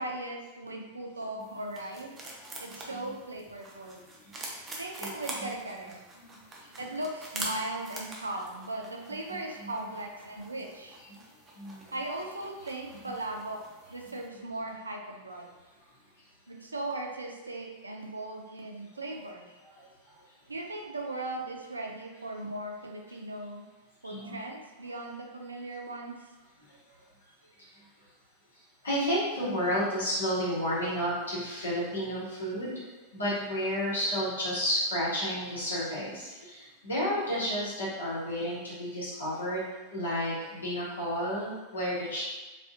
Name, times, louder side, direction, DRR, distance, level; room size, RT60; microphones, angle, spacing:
voice 1, 0.0-2.1 2.6-4.0 4.8-6.0 6.8-11.0 11.9-13.6 13.9-15.5 16.5-19.5 20.5-23.6 24.0-26.2, right 2 dB, 80° right, 1 dB, 0.3 m, -38 dB
sound 1, 1.4-14.3, right 2 dB, 20° right, 0.4 m, -45 dB
voice 2, 5.0-5.5 6.3-6.8 9.6-9.7 11.5-11.9 18.9-19.1 19.6-19.7 24.0-24.4 26.6-26.7 27.7-27.9 28.8-32.7 33.1-42.2, equal, 70° left, -8 dB, 1.0 m, -32 dB
2.6 x 2.3 x 2.3 m, 1.1 s
figure-of-eight pair, 90°, 0 cm